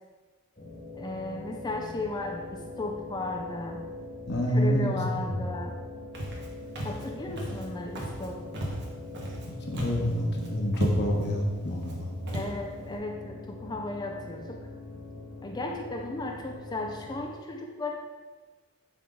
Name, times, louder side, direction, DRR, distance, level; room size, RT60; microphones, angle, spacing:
sound 1, 0.6-17.3, left 2 dB, 35° left, 1.4 m, -43 dB
voice 1, 0.9-3.8 4.5-5.8 6.8-8.4 12.3-14.6 15.4-17.9, left 2 dB, 20° left, 2 dB, 0.5 m, -35 dB
voice 2, 4.3-5.4 9.7-12.1, equal, 50° left, 0 dB, 1.1 m, -27 dB
Walk footsteps, 6.1-6.5 6.8-7.1 7.4-7.7 8.0-8.3 8.5-9.5 9.7-10.1 10.4-10.5 10.7-11.3 11.8-11.9 12.3-12.5, equal, 50° right, 1.2 m, -33 dB
9.3 x 3.6 x 3.7 m, 1.4 s
head